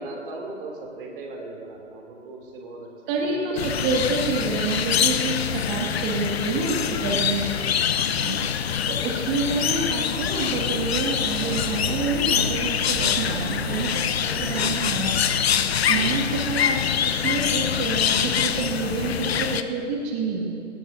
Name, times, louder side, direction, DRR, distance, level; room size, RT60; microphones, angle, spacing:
voice 1, 0.0-2.9 6.6-7.2 7.8-8.1 8.5-8.6 14.2-14.7 15.9-16.1, right 2 dB, 45° right, 0 dB, 3.1 m, -39 dB
voice 2, 3.1-7.6 8.1-8.4 8.9-15.2 15.9-20.5, right 3 dB, 25° right, -2 dB, 2.3 m, -28 dB
sound 1, 3.6-19.6, left 8 dB, 55° left, 0.8 m, -25 dB
sound 2, 10.7-16.5, right 7 dB, 60° right, 0.8 m, -39 dB
18.5 x 18.0 x 2.8 m, 2.6 s
figure-of-eight pair, 135°, 38 cm